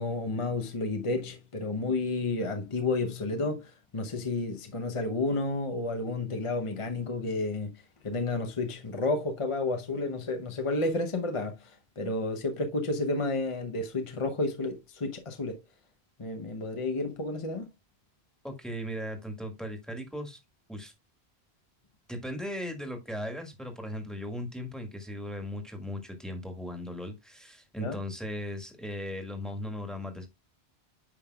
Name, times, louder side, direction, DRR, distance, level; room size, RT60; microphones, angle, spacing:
voice 1, 0.0-15.6 16.2-17.7 27.8-28.0, left 2 dB, 35° left, 0.9 m, -31 dB
voice 2, 18.4-20.4 20.7-20.9 22.1-30.3, equal, ahead, 1.7 m, -37 dB
9.5 x 5.3 x 2.3 m
omnidirectional pair, 1.1 m